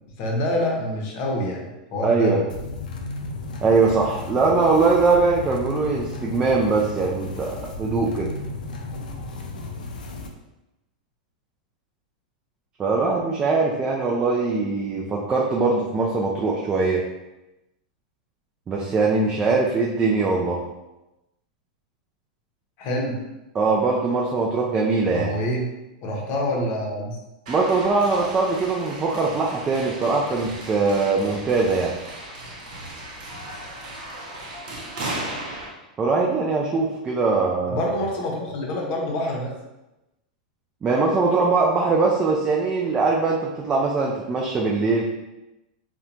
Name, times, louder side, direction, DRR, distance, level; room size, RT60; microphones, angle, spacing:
voice 1, 0.2-2.4 22.8-23.2 25.1-25.7 26.0-27.2 37.7-39.5, left 1 dB, 45° left, 0 dB, 0.7 m, -26 dB
voice 2, 2.0-2.4 3.6-8.3 12.8-17.0 18.7-20.6 23.6-25.3 27.5-31.9 36.0-37.8 40.8-45.0, right 3 dB, 20° right, -2 dB, 0.3 m, -21 dB
sound 1, 2.5-10.3, left 3 dB, 90° left, 0.4 m, -34 dB
sound 2, 27.5-35.7, right 1 dB, 65° right, 0.8 m, -36 dB
2.8 x 2.2 x 2.5 m, 0.98 s
hypercardioid pair, 130°, 4 cm